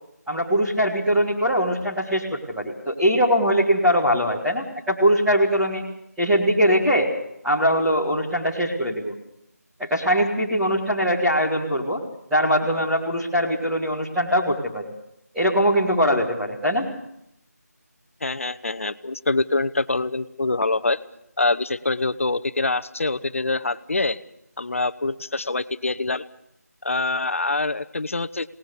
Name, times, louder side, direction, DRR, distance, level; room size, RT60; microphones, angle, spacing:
voice 1, 0.3-5.8 6.2-7.1 7.4-9.1 9.8-12.0 12.3-14.8 15.3-16.9, equal, 5° right, -10 dB, 1.9 m, -21 dB
voice 2, 18.2-21.0 21.4-24.2 24.6-26.2 26.8-28.5, left 3 dB, 50° left, 13 dB, 1.0 m, -25 dB
26.5 x 19.5 x 6.8 m, 0.77 s
figure-of-eight pair, 170°, 9 cm